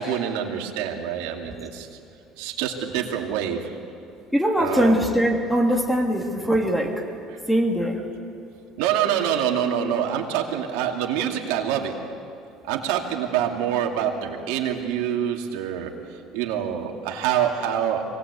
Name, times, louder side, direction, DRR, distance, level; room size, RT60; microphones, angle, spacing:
voice 1, 0.0-1.9 2.4-3.7 4.6-5.0 8.8-11.9 12.6-15.9 16.3-18.0, right 9 dB, 85° right, 1 dB, 2.5 m, -26 dB
voice 2, 4.3-7.0 7.5-8.0, equal, ahead, 2 dB, 2.9 m, -21 dB
24.5 x 19.0 x 8.2 m, 2.6 s
supercardioid pair, 110°, 0 cm